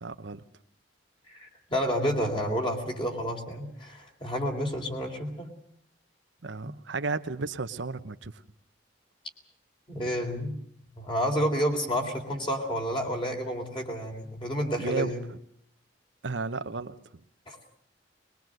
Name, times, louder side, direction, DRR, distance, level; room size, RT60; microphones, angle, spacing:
voice 1, 0.0-0.4 6.4-8.3 14.8-15.1 16.2-16.9, right 3 dB, 75° right, 10 dB, 0.9 m, -33 dB
voice 2, 1.3-5.5 6.6-6.7 9.9-10.6 11.0-15.2 17.5-17.6, equal, 25° left, 3 dB, 3.5 m, -30 dB
22.0 x 21.5 x 7.8 m, 0.69 s
head